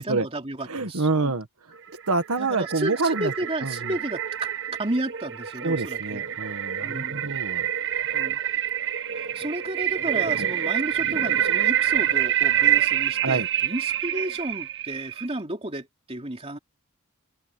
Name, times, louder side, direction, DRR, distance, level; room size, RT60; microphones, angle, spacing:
voice 1, 0.0-1.4 2.4-6.2 6.8-7.3 8.1-8.4 9.1-16.6, right 1 dB, 25° right, 3.0 m, -32 dB
voice 2, 0.7-1.5 2.1-3.3 3.6-3.7 5.6-7.7 10.4-10.5 13.2-13.5, right 3 dB, 75° right, 1.7 m, -26 dB
sound 1, 1.9-15.3, right 11 dB, 55° right, 1.2 m, -26 dB
open air
head